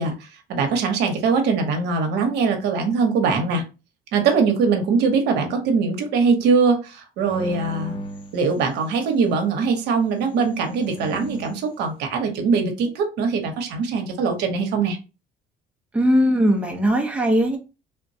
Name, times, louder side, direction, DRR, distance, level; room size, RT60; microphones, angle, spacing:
voice 1, 0.0-3.6 4.1-8.0 8.3-15.0, right 5 dB, 80° right, 4 dB, 0.8 m, -22 dB
sound 1, 7.2-9.2 10.2-11.7, right 1 dB, 30° left, 0.4 m, -36 dB
voice 2, 15.9-17.6, equal, 5° right, 1 dB, 0.7 m, -19 dB
3.4 x 2.2 x 2.6 m, 0.30 s
cardioid pair, 110°, 17 cm